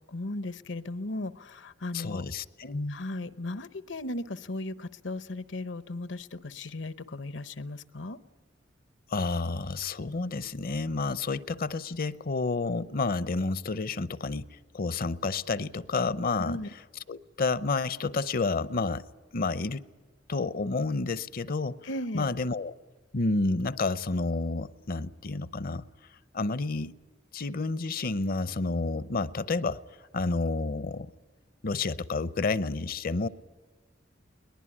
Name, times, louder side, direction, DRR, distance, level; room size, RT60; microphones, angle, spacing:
voice 1, 0.1-2.3 2.9-8.2 16.4-16.7 21.8-22.3, left 2 dB, 80° left, 14 dB, 0.9 m, -36 dB
voice 2, 1.9-3.0 9.1-16.6 17.1-19.0 19.3-19.8 20.3-21.9 22.1-22.7 23.1-25.9 26.3-26.9 27.3-29.8 30.1-31.1 31.6-33.3, left 3 dB, 50° left, 17 dB, 0.6 m, -30 dB
22.0 x 20.0 x 10.0 m, 1.3 s
head